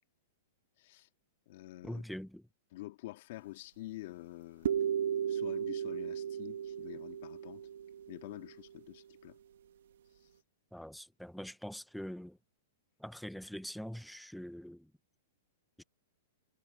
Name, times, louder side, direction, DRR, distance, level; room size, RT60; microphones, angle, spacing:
voice 1, 0.8-1.1 1.5-2.0 2.7-4.8 5.3-7.7 8.1-9.4, left 17 dB, 55° left, 2.1 m, -47 dB
voice 2, 1.8-2.4 10.7-12.4 13.0-14.9 15.8-15.9, equal, ahead, 1.1 m, -44 dB
sound 1, 4.6-8.7, right 9 dB, 75° right, 1.5 m, -35 dB
hypercardioid pair, 140°, 0 cm